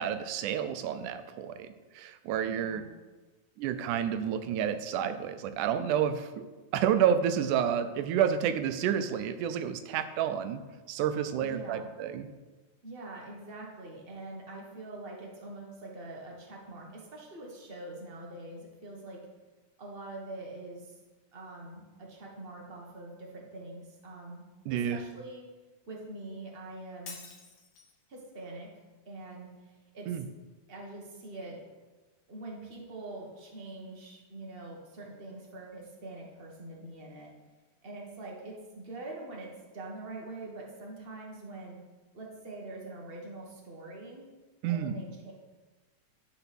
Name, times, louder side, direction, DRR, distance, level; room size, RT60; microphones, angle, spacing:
voice 1, 0.0-2.8 3.6-6.4 6.7-10.6 10.9-12.3 24.7-25.0 30.1-30.3 44.6-45.0, right 9 dB, 85° right, 10 dB, 2.2 m, -30 dB
voice 2, 2.4-2.9 11.4-11.9 12.8-19.3 19.8-20.9 21.3-24.4 24.7-25.5 25.9-27.2 28.1-28.7 29.1-30.1 30.7-31.6 32.3-37.3 37.8-41.8 42.1-44.3 44.7-45.3, right 2 dB, 60° right, -2 dB, 0.5 m, -44 dB
Shatter, 27.1-28.0, left 5 dB, 60° left, 1.3 m, -47 dB
11.0 x 4.5 x 5.9 m, 1.2 s
omnidirectional pair, 3.5 m